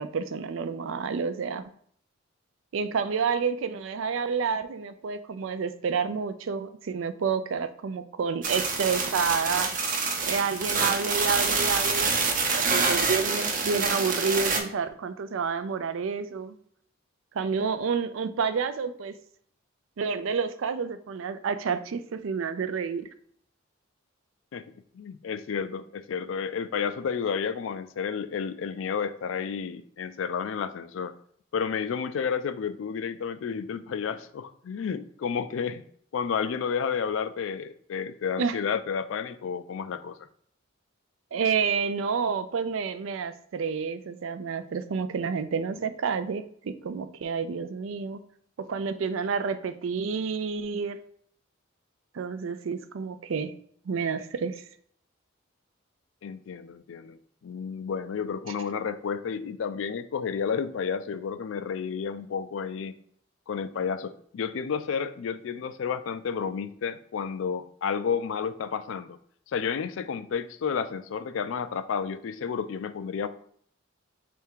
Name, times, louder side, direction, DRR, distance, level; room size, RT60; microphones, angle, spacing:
voice 1, 0.0-1.6 2.7-9.7 10.2-16.5 17.3-19.1 20.0-23.1 38.4-38.6 41.3-48.2 48.6-51.0 52.1-53.5 53.9-54.6, right 5 dB, 80° right, 12 dB, 0.4 m, -29 dB
sound 1, 8.4-14.6, right 4 dB, 40° right, 0.7 m, -26 dB
voice 2, 24.9-31.1 31.5-35.8 36.1-40.2 56.2-62.9 63.5-69.2 69.5-73.3, left 6 dB, 75° left, 12 dB, 0.4 m, -31 dB
3.5 x 3.3 x 4.5 m, 0.62 s
head